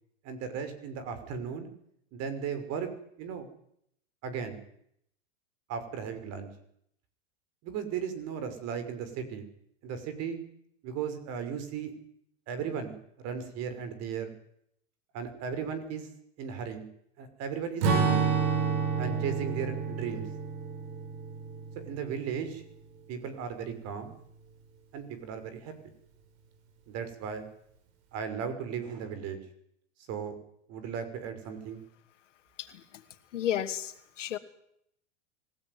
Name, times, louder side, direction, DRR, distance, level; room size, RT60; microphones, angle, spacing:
voice 1, 0.2-1.7 2.1-2.9 3.2-3.5 4.2-4.6 5.7-6.5 7.6-9.5 9.8-10.4 10.8-11.9 12.5-12.9 13.2-14.3 15.1-16.1 16.4-16.9 17.2-18.2 19.0-20.3 21.9-22.6 23.1-24.2 24.9-25.7 26.9-27.5 28.1-29.4 30.1-30.4 30.7-31.8, right 7 dB, 45° right, 10 dB, 6.0 m, -36 dB
Strum, 17.8-22.5, right 5 dB, 65° right, 6.1 m, -29 dB
voice 2, 32.6-33.0 33.3-34.4, left 10 dB, 80° left, 9 dB, 2.7 m, -33 dB
26.0 x 17.0 x 9.7 m, 0.72 s
hypercardioid pair, 115°, 36 cm